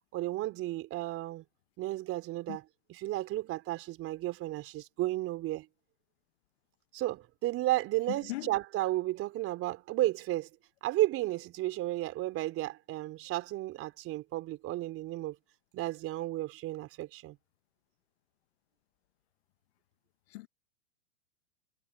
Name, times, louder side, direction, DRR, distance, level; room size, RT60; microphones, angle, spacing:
voice 1, 0.1-1.4 1.8-5.7 6.9-10.5 10.8-15.4 15.7-17.4, right 16 dB, 35° right, 3.9 m, -33 dB
voice 2, 8.1-8.6 20.3-20.5, left 19 dB, 55° left, 1.4 m, -39 dB
hypercardioid pair, 105°, 39 cm